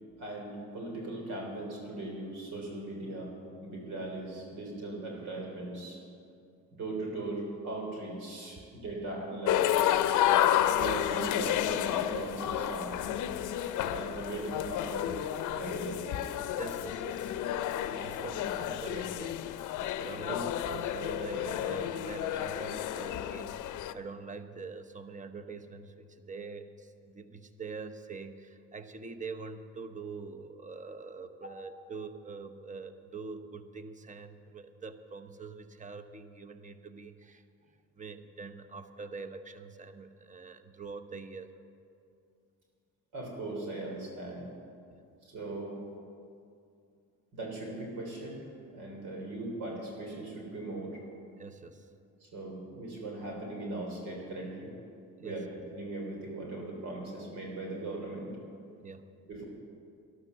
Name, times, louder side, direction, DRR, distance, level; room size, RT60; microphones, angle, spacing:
voice 1, 0.2-3.4 3.6-6.0 6.7-10.0 10.6-13.0 13.9-15.2 15.5-16.2 18.0-18.5 20.3-20.4 31.4-31.5 43.1-44.5 45.2-45.8 47.3-48.4 48.7-51.0 52.2-54.7 55.2-55.5 55.7-58.3 59.2-59.4, right 2 dB, 90° right, 0 dB, 3.5 m, -39 dB
sound 1, 9.5-23.9, left 11 dB, 80° left, 0.6 m, -31 dB
voice 2, 16.6-17.3 17.9-19.6 20.0-41.5 51.4-51.9 55.2-55.5 58.8-59.1, right 4 dB, 25° right, 8 dB, 0.9 m, -44 dB
12.5 x 11.5 x 6.9 m, 2.5 s
cardioid pair, 90°, 30 cm